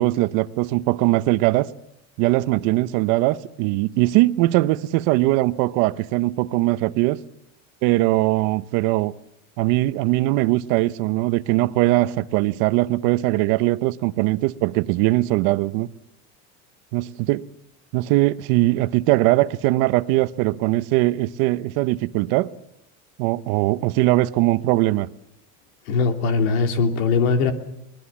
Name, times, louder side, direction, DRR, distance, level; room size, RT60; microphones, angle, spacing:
voice 1, 0.0-1.7 2.2-7.2 7.8-9.1 9.6-15.9 16.9-17.4 17.9-22.5 23.2-25.1, right 18 dB, 60° right, 0.9 m, -20 dB
voice 2, 25.9-27.5, left 4 dB, 90° left, 3.1 m, -20 dB
24.5 x 20.5 x 7.3 m
cardioid pair, 150°, 41 cm